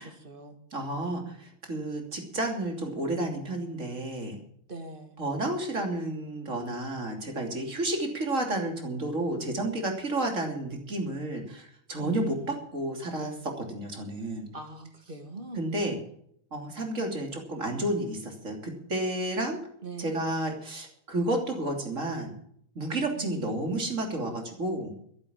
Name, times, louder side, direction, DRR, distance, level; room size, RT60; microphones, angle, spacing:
voice 1, 0.0-0.6 4.7-5.2 12.0-12.5 14.5-15.6 19.8-20.2 23.2-23.6, right 3 dB, 40° right, 5 dB, 2.3 m, -41 dB
voice 2, 0.7-4.4 5.2-14.5 15.5-16.0 16.5-19.6 20.0-22.3 22.7-24.9, right 1 dB, 65° right, 2 dB, 3.4 m, -31 dB
13.0 x 11.0 x 7.2 m, 0.66 s
omnidirectional pair, 1.4 m